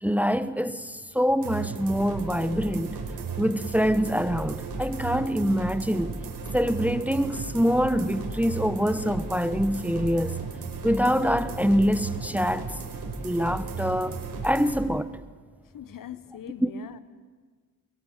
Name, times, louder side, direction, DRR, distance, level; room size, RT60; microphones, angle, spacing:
voice 1, 0.0-3.0 3.4-6.1 6.5-10.4 10.8-12.7 13.2-15.1 16.6-16.7, equal, 5° right, 1.0 m, -25 dB
sound 1, 1.4-14.8, right 4 dB, 70° right, 4.8 m, -35 dB
voice 2, 15.7-17.0, left 10 dB, 65° left, 1.3 m, -41 dB
23.5 x 23.0 x 7.4 m
cardioid pair, 80°, 36 cm